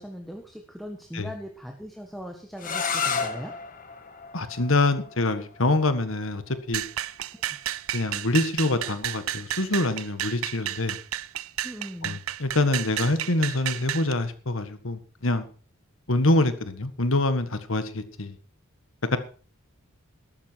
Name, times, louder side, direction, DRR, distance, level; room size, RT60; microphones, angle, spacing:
voice 1, 0.0-3.5 7.3-7.6 11.6-12.2, equal, ahead, 2 dB, 1.5 m, -39 dB
sound 1, 2.6-8.3, left 5 dB, 40° left, 1.6 m, -34 dB
voice 2, 4.3-6.4 6.7-6.8 7.9-10.9 12.0-15.5 16.1-18.3 19.1-19.2, left 2 dB, 70° left, 10 dB, 1.7 m, -25 dB
sound 2, 6.7-14.1, right 12 dB, 80° right, 0.6 m, -32 dB
13.0 x 13.0 x 4.7 m, 0.40 s
head